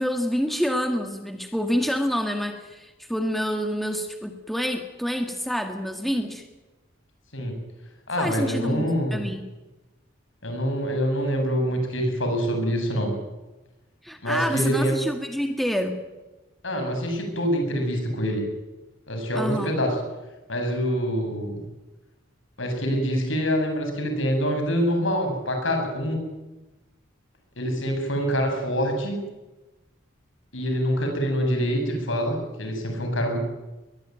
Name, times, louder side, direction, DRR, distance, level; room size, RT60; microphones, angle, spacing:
voice 1, 0.0-6.5 8.2-9.4 14.0-16.0 19.4-19.8, equal, ahead, 5 dB, 1.7 m, -27 dB
voice 2, 8.1-9.2 10.4-13.1 14.2-15.0 16.6-18.4 19.1-19.9 20.5-21.5 22.6-26.2 27.6-29.2 30.5-33.4, equal, 75° left, 4 dB, 7.5 m, -25 dB
22.0 x 21.0 x 9.4 m, 1.1 s
head